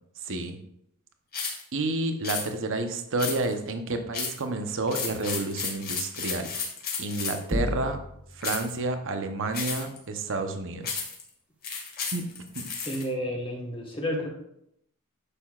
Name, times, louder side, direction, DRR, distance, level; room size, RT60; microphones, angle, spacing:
voice 1, 0.2-0.6 1.7-6.5 7.0-8.0 8.3-11.0 12.1-12.2 12.6-12.7, right 2 dB, 60° right, 7 dB, 0.9 m, -30 dB
sound 1, 1.3-1.6 2.2-2.5 3.2-3.6 4.1-4.4 4.9-7.5 8.4-8.7 9.5-10.0 10.8-11.2 11.6-13.0, left 5 dB, 45° left, 1.9 m, -33 dB
sound 2, 7.5-8.5, left 1 dB, 5° right, 0.8 m, -30 dB
voice 2, 12.8-14.3, equal, 25° left, -1 dB, 1.4 m, -31 dB
9.9 x 6.8 x 2.4 m, 0.76 s
head